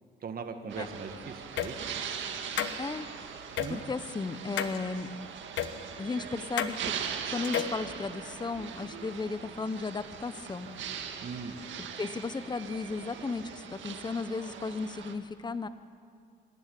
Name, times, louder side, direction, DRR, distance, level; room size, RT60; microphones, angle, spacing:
voice 1, 0.2-1.8 3.6-3.8 11.2-11.6, right 5 dB, 45° right, 7 dB, 1.7 m, -39 dB
sound 1, 0.7-15.1, right 7 dB, 70° right, 1.8 m, -41 dB
sound 2, 1.6-1.7 2.6-2.7 3.6-3.7 4.6-4.8 5.6-5.7 6.6-6.7 7.4-7.8, left 10 dB, 70° left, 1.2 m, -30 dB
voice 2, 2.8-3.1 3.7-5.1 6.0-6.9 7.3-10.7 11.8-15.7, left 4 dB, 20° left, 13 dB, 0.9 m, -35 dB
27.0 x 13.0 x 8.6 m, 2.3 s
cardioid pair, 90°, 20 cm